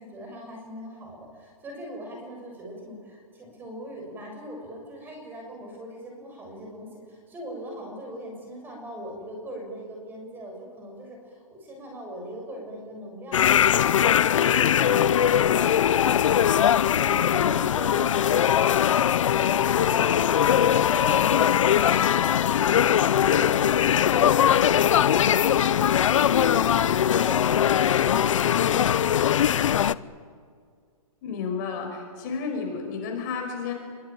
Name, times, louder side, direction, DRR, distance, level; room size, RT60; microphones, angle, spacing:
voice 1, 0.0-15.6 16.0-29.9, equal, 10° right, 1 dB, 7.2 m, -41 dB
sound 1, 13.3-29.9, left 9 dB, 60° left, 0.8 m, -21 dB
voice 2, 31.2-33.7, left 5 dB, 30° left, 2 dB, 5.5 m, -31 dB
27.5 x 23.5 x 9.1 m, 2.1 s
hypercardioid pair, 165°, 19 cm